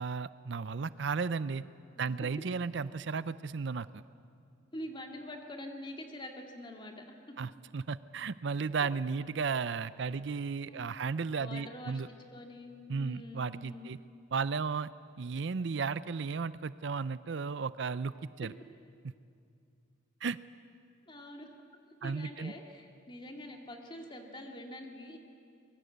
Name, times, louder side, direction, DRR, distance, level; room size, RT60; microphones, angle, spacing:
voice 1, 0.0-1.6 2.0-4.0 7.4-12.1 12.9-14.0 14.3-14.9 15.2-18.5 20.2-20.4 22.0-22.5, right 5 dB, 60° right, 16 dB, 0.5 m, -34 dB
voice 2, 4.7-7.0 10.7-11.0 11.4-12.0 12.3-13.9 21.1-21.5 22.0-25.2, left 1 dB, 25° left, 3 dB, 2.4 m, -45 dB
24.0 x 21.5 x 8.1 m, 2.4 s
head